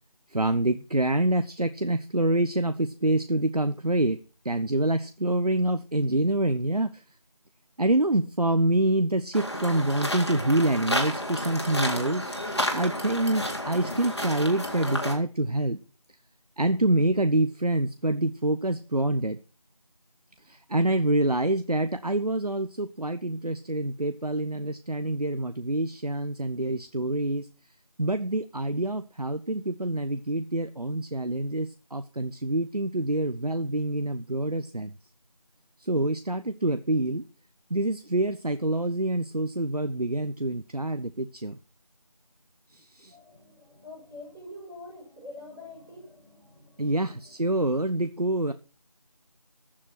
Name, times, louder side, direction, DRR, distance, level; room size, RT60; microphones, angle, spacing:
voice 1, 0.3-4.2 4.4-7.0 7.8-15.8 16.6-19.4 20.5-27.5 28.0-34.9 35.8-37.2 37.7-41.6 42.7-43.1 46.8-48.5, right 1 dB, 85° right, 10 dB, 1.1 m, -26 dB
sound 1, 9.3-15.1, equal, 45° left, 3.7 m, -31 dB
voice 2, 43.1-47.3, left 2 dB, 5° left, -13 dB, 2.5 m, -46 dB
15.0 x 7.6 x 6.0 m, 0.35 s
figure-of-eight pair, 175°, 19 cm